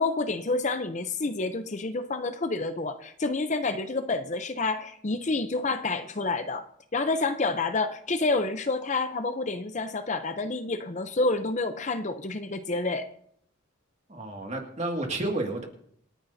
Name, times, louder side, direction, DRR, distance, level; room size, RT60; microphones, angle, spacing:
voice 1, 0.0-6.6 6.9-13.1, left 3 dB, 35° left, 9 dB, 0.6 m, -28 dB
voice 2, 14.1-15.6, right 2 dB, 35° right, 2 dB, 2.1 m, -31 dB
27.0 x 9.9 x 2.7 m, 0.68 s
head